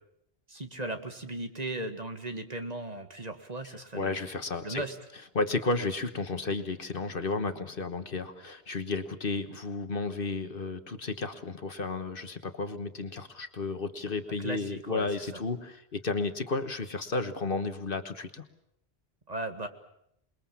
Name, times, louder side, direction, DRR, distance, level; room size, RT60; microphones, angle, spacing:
voice 1, 0.5-4.1 4.6-4.9 14.4-15.1 19.3-19.7, right 2 dB, 40° right, 6 dB, 1.9 m, -37 dB
voice 2, 3.9-4.8 5.3-18.4, left 3 dB, 60° left, 9 dB, 1.5 m, -33 dB
27.5 x 21.5 x 7.3 m, 0.74 s
omnidirectional pair, 1.1 m